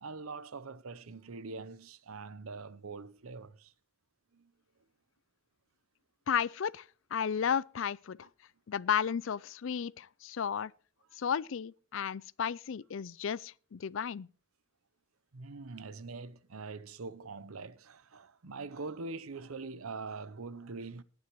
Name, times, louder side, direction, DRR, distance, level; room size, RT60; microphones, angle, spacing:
voice 1, 0.0-3.7 4.3-4.5 15.3-21.0, right 4 dB, 85° right, 0.8 m, -43 dB
voice 2, 6.3-6.9 7.1-8.3 8.7-10.7 11.2-14.3, left 7 dB, 65° left, 0.4 m, -33 dB
18.5 x 9.5 x 3.1 m
head